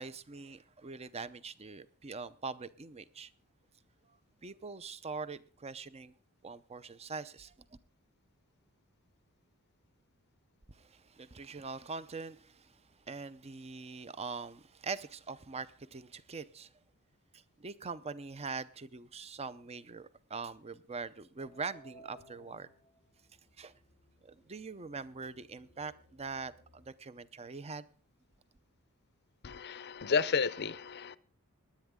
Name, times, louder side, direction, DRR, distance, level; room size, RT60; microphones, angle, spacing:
voice 1, 0.0-3.3 4.1-4.2 4.4-6.1 6.4-7.5 10.7-16.7 17.3-22.7 23.6-23.7 24.2-27.9, right 4 dB, 30° right, 0.6 m, -43 dB
sound 1, 21.4-26.9, right 1 dB, 80° right, 6.8 m, -61 dB
voice 2, 29.4-31.2, left 5 dB, 50° left, 0.6 m, -32 dB
19.0 x 10.5 x 3.7 m
head